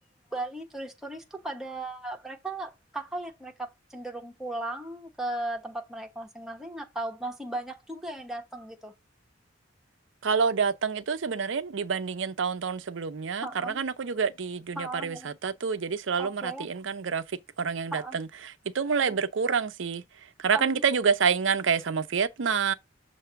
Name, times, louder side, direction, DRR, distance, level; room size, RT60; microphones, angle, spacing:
voice 1, 0.3-9.0 13.4-13.8 14.8-15.3 16.2-16.7 17.9-18.2 19.0-19.2 20.5-20.8, right 2 dB, ahead, 1.2 m, -36 dB
voice 2, 10.2-17.2 17.6-18.3 18.7-20.0 20.4-22.7, right 6 dB, 85° right, 0.6 m, -27 dB
6.8 x 2.7 x 5.6 m
head